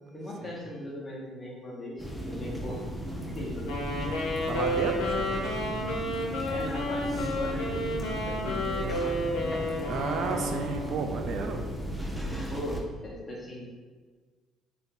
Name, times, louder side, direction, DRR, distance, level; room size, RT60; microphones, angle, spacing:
voice 1, 0.1-2.8 3.2-4.4 6.4-9.2 9.8-9.9 12.5-13.9, left 1 dB, 20° left, -3 dB, 1.0 m, -39 dB
sound 1, 2.0-12.8, equal, ahead, 0.5 m, -36 dB
Wind instrument woodwind instrument, 3.7-11.1, left 1 dB, 80° left, 0.7 m, -31 dB
voice 2, 4.5-5.5 9.9-11.6, right 5 dB, 60° right, 4 dB, 0.3 m, -32 dB
2.7 x 2.6 x 3.7 m, 1.5 s
supercardioid pair, 75°, 0 cm